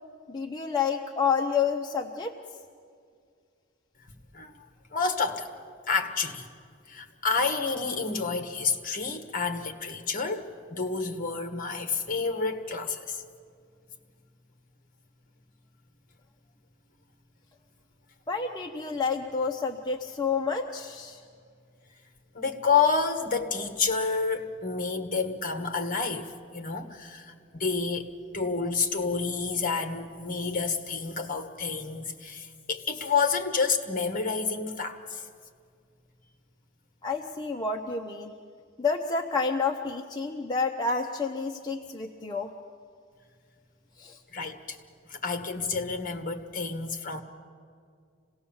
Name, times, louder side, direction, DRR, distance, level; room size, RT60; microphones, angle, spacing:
voice 1, 0.3-2.3 18.3-21.2 37.0-38.3 38.8-42.5 44.0-44.2, left 5 dB, 20° left, 1 dB, 0.8 m, -29 dB
voice 2, 4.3-4.6 4.9-5.5 5.9-6.5 6.9-13.2 22.3-35.2 44.3-44.8 45.1-47.2, left 5 dB, 40° left, 7 dB, 1.5 m, -29 dB
26.0 x 17.5 x 7.2 m, 2.2 s
head